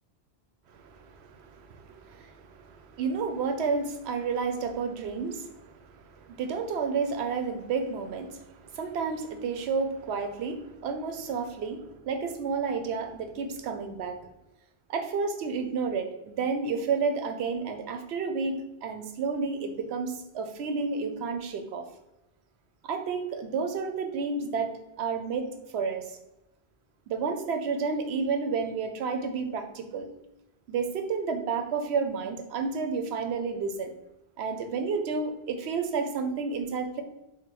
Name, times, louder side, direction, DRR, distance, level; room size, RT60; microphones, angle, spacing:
voice 1, 0.7-14.2 14.9-21.9 22.8-24.7 25.0-26.2 27.1-30.1 30.7-33.9 34.4-37.0, right 5 dB, 90° right, 6 dB, 0.9 m, -31 dB
4.5 x 2.1 x 4.4 m, 0.92 s
omnidirectional pair, 1.1 m